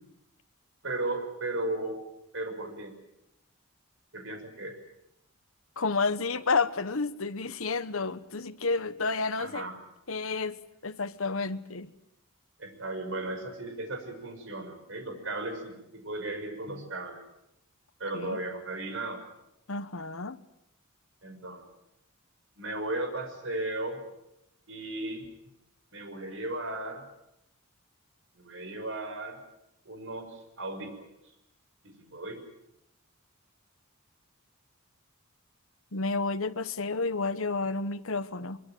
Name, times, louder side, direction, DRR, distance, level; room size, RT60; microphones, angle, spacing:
voice 1, 0.8-2.0 2.3-2.9 4.1-4.8 9.4-9.8 12.6-17.2 18.0-19.2 21.2-21.7 22.6-24.0 24.7-25.2 25.9-27.0 28.4-29.4 29.8-31.1 31.8-32.4, right 2 dB, 60° right, 6.0 m, -36 dB
voice 2, 5.8-9.7 10.1-11.9 18.1-18.4 19.7-20.4 35.9-38.6, left 4 dB, 70° left, 1.2 m, -30 dB
23.5 x 23.5 x 9.2 m
head